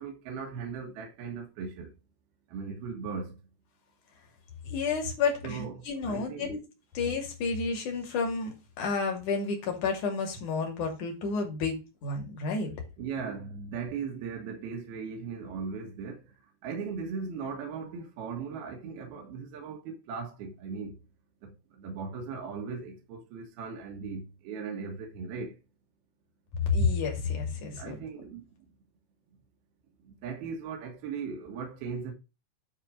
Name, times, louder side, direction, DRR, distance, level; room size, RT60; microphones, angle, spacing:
voice 1, 0.0-1.9 2.5-3.4 5.4-6.5 13.0-16.2 16.6-21.0 21.4-21.5 21.8-25.5 27.7-28.4 30.1-32.1, right 5 dB, 65° right, 3.3 m, -38 dB
voice 2, 4.6-6.6 6.9-12.7 26.5-28.0, left 4 dB, 50° left, 3.5 m, -30 dB
10.5 x 4.4 x 6.4 m
omnidirectional pair, 5.0 m